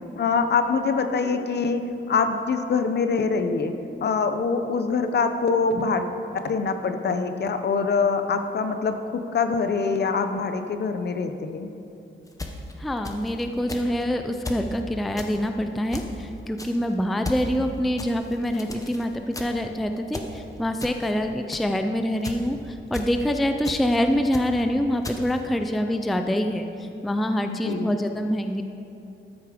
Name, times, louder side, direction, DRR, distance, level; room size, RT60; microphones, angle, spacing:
voice 1, 0.2-3.7 4.0-6.1 6.4-11.7 27.5-28.0, left 5 dB, 55° left, 8 dB, 0.7 m, -24 dB
sound 1, 12.3-13.4 13.7-14.0 14.5-14.7 15.2-15.4 15.9-16.2 16.6-16.8 17.2-17.5 18.0-19.1 19.3-19.7 20.1-20.4 20.8-21.1 21.5-21.8 22.2-22.5 22.9-23.2 23.6-24.0 24.3-24.6 25.0-25.4, left 2 dB, 15° left, 0.8 m, -35 dB
voice 2, 12.8-28.7, equal, ahead, 6 dB, 0.4 m, -25 dB
13.5 x 8.4 x 5.0 m, 2.8 s
wide cardioid pair, 175°, 21 cm